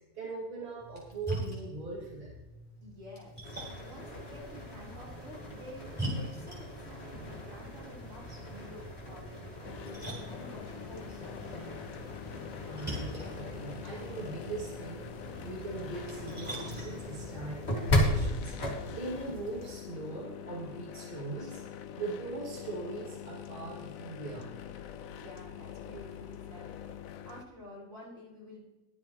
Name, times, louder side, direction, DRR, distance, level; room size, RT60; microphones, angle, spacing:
voice 1, 0.1-2.3 12.6-21.6 21.9-24.5, right 3 dB, 40° right, -6 dB, 2.7 m, -40 dB
Splash splatter, 0.8-17.9, equal, 5° right, 4.2 m, -44 dB
voice 2, 2.8-12.0 21.4-21.6 25.2-27.0 27.2-28.6, equal, 60° right, -5 dB, 4.3 m, -50 dB
sound 1, 3.4-19.7, left 1 dB, 45° left, 2.6 m, -37 dB
sound 2, 9.6-27.4, left 10 dB, 70° left, 1.1 m, -45 dB
22.5 x 7.5 x 3.1 m, 1.1 s
omnidirectional pair, 1.5 m